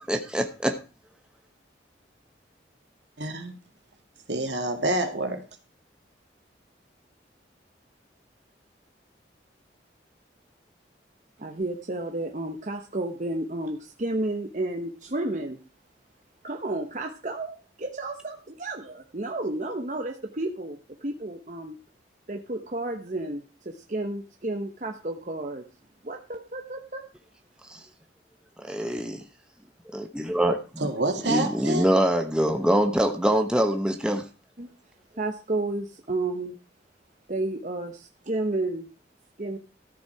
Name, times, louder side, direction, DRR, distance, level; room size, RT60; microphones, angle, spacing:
voice 1, 0.1-0.8 27.7-27.8 28.6-29.2 29.9-30.9 31.2-34.3, right 1 dB, 5° right, 4 dB, 1.0 m, -24 dB
voice 2, 3.2-3.5 4.3-5.4 30.8-31.8, right 2 dB, 75° right, 3 dB, 2.4 m, -27 dB
voice 3, 11.4-15.6 16.4-21.8 22.3-25.6 26.0-27.1 34.6-34.7 35.2-36.6 37.3-38.9 39.4-39.6, right 2 dB, 40° right, 3 dB, 1.0 m, -32 dB
13.5 x 7.3 x 4.8 m, 0.33 s
head